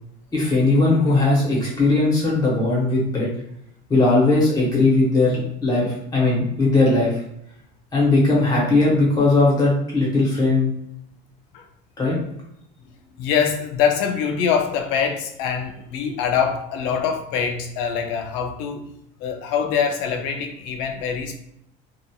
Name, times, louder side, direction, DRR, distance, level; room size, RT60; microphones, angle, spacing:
voice 1, 0.3-3.3 3.9-7.2 7.9-10.7 12.0-12.2, left 2 dB, 20° left, -5 dB, 1.0 m, -18 dB
voice 2, 13.2-18.9 19.2-21.4, left 7 dB, 70° left, 5 dB, 0.5 m, -24 dB
2.9 x 2.4 x 2.3 m, 0.73 s
cardioid pair, 155°, 20 cm